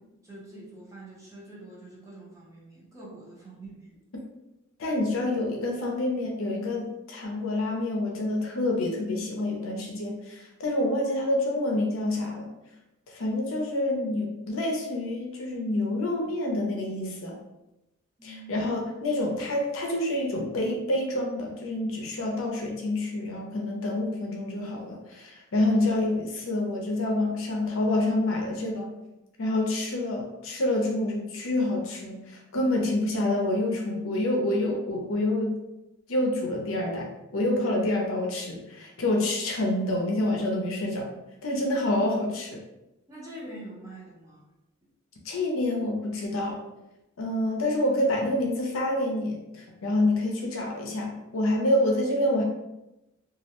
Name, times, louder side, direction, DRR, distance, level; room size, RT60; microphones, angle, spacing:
voice 1, 0.0-3.9 18.2-18.5 43.1-44.5, right 1 dB, 15° right, -6 dB, 0.7 m, -45 dB
voice 2, 4.8-12.5 13.1-17.4 18.2-28.9 29.4-35.6 36.1-37.1 37.3-41.1 41.4-42.6 45.2-46.6 47.2-52.4, left 1 dB, 75° left, 0 dB, 0.5 m, -27 dB
2.3 x 2.1 x 2.8 m, 0.95 s
head